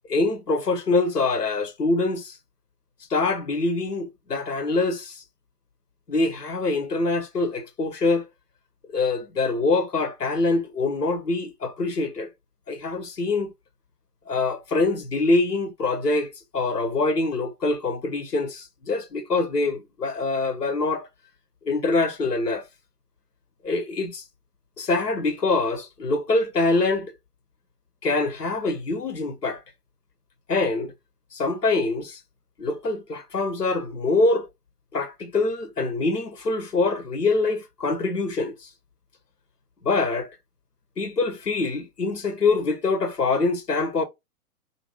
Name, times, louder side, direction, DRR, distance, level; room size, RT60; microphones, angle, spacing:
voice 1, 0.1-2.4 3.1-5.2 6.1-8.2 8.9-12.3 12.7-13.5 14.3-21.1 21.6-22.6 23.6-24.2 24.8-27.1 28.0-29.6 30.5-30.9 31.3-32.2 32.6-34.5 34.9-38.7 39.8-40.3 41.0-44.0, left 3 dB, 90° left, 0.7 m, -24 dB
2.4 x 2.3 x 3.1 m
figure-of-eight pair, 120°, 46 cm